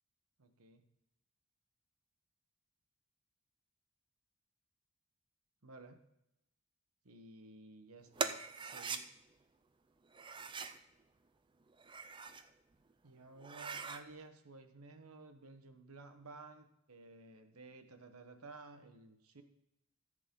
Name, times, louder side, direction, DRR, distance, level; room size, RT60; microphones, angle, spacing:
voice 1, 0.4-0.8 5.6-6.0 7.0-9.1 13.0-19.4, right 3 dB, 85° right, 7 dB, 1.3 m, -55 dB
sound 1, 8.2-9.0 10.1-10.8 11.7-12.5 12.9-13.0 13.4-14.0, right 5 dB, 20° right, 0.5 m, -41 dB
14.0 x 8.1 x 3.8 m, 0.84 s
head